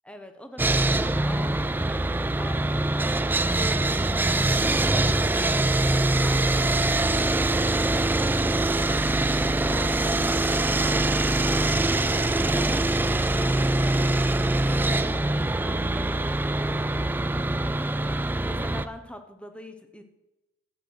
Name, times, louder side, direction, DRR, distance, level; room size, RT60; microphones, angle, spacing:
voice 1, 0.0-20.0, left 1 dB, 5° left, 7 dB, 1.0 m, -43 dB
Sawing, 0.6-18.9, right 2 dB, 10° right, 0.4 m, -23 dB
12.5 x 8.3 x 6.5 m, 1.0 s
head